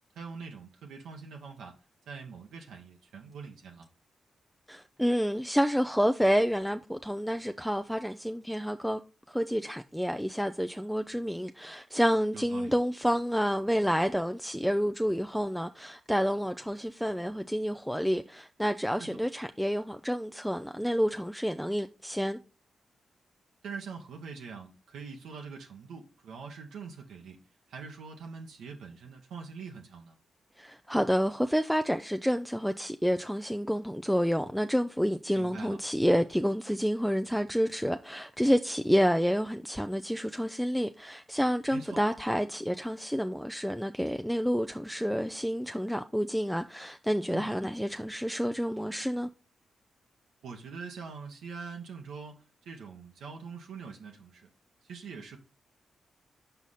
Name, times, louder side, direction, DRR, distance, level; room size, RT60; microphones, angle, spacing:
voice 1, 0.1-1.7 2.1-3.9 12.3-12.7 19.0-19.2 23.6-27.4 27.7-30.2 35.3-35.8 41.7-42.0 47.3-47.5 50.4-52.4 52.6-54.5 54.8-55.4, right 5 dB, 80° right, 1.0 m, -43 dB
voice 2, 4.7-9.0 9.3-22.4 30.6-49.3, equal, ahead, 0.4 m, -29 dB
5.6 x 4.7 x 4.1 m
supercardioid pair, 50°, 0 cm